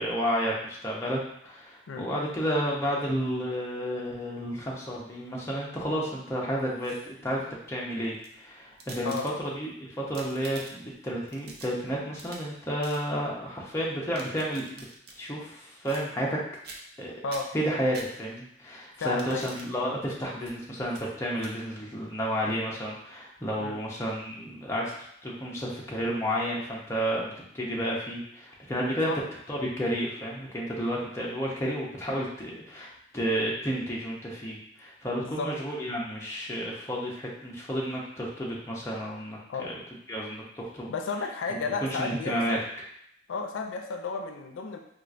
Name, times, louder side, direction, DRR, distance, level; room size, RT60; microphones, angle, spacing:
voice 1, 0.0-9.1 9.4-14.9 15.2-16.4 17.0-17.1 17.5-24.9 25.2-29.1 29.5-39.7 40.1-40.9 41.8-42.6, equal, 15° left, -4 dB, 0.6 m, -31 dB
sound 1, 6.6-7.3 8.0-9.6 10.0-10.9 11.3-12.5 12.8-13.0 13.9-15.2 15.8-16.4 16.6-17.0 17.3-18.5 19.0-19.7 20.4-20.5 20.9-21.0 21.4-21.5, right 3 dB, 55° right, 0.5 m, -46 dB
voice 2, 19.0-19.5 23.6-23.8 29.1-29.2 31.6-31.8 35.2-35.5 39.5-39.7 40.9-42.6 43.3-44.8, left 4 dB, 85° left, 3 dB, 0.4 m, -33 dB
4.4 x 2.4 x 2.5 m, 0.72 s
head